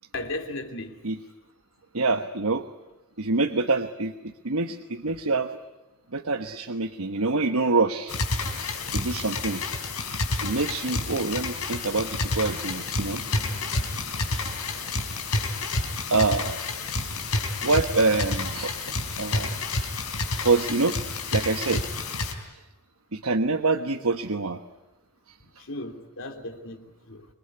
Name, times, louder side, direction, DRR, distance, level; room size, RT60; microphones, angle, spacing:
voice 1, 0.1-1.0 25.6-27.3, left 2 dB, 60° left, 3.0 m, -36 dB
voice 2, 1.9-2.7 3.2-5.6 6.1-8.2 8.9-9.6 10.4-13.2 16.1-16.6 17.6-18.8 19.2-19.6 20.4-21.9 23.1-24.6, right 3 dB, 70° right, 1.2 m, -26 dB
sound 1, 8.1-22.3, left 3 dB, 85° left, 4.3 m, -29 dB
Drum, 13.0-15.6, equal, 50° right, 2.3 m, -48 dB
27.0 x 22.0 x 9.8 m
head